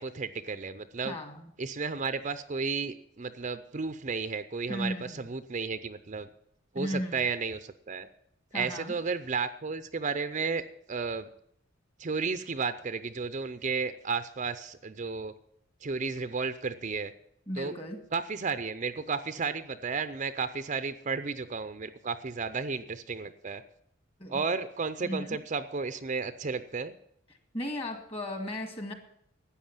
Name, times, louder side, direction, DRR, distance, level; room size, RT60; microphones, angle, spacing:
voice 1, 0.0-1.2 1.6-6.3 6.7-8.1 8.5-10.6 10.9-11.3 12.0-15.3 15.8-17.1 17.6-17.7 18.1-23.6 24.3-26.9, right 5 dB, 35° right, 11 dB, 0.5 m, -33 dB
voice 2, 1.0-1.5 4.7-5.3 6.8-7.3 8.5-8.9 17.5-18.0 24.2-24.4 25.0-25.4 27.5-28.9, left 1 dB, 30° left, 5 dB, 2.0 m, -36 dB
13.0 x 8.6 x 7.3 m, 0.71 s
head